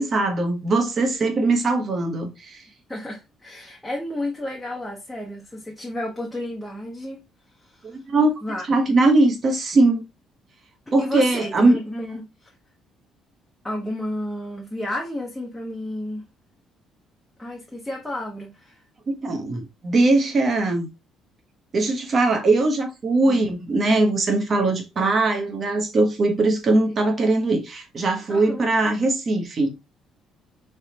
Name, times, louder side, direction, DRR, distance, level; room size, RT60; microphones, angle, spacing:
voice 1, 0.0-2.6 7.9-8.3 8.7-10.1 10.9-11.8 19.1-20.9 21.7-29.7, right 2 dB, 30° right, 1.0 m, -20 dB
voice 2, 2.9-7.2 7.6-8.0 8.4-8.7 11.0-12.5 13.6-16.3 17.4-18.8 23.2-23.4 27.0-27.1 28.3-28.7, left 1 dB, 5° left, 0.8 m, -32 dB
3.9 x 3.5 x 2.8 m
cardioid pair, 160°, 0 cm